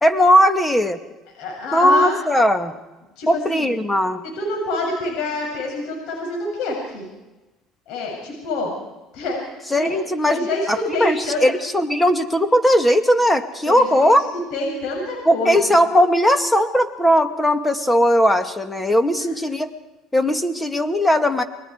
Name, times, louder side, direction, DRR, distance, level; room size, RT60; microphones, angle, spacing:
voice 1, 0.0-1.0 1.7-2.7 3.3-4.2 9.7-14.3 15.3-19.7 20.1-21.4, equal, 10° left, 8 dB, 2.3 m, -18 dB
voice 2, 1.4-2.1 3.2-3.7 4.2-7.1 7.9-8.7 9.1-10.0 10.3-11.4 13.7-14.1 14.5-15.7 19.1-19.3, left 2 dB, 70° left, -1 dB, 7.6 m, -27 dB
29.0 x 22.0 x 4.8 m, 1.1 s
supercardioid pair, 80°, 0 cm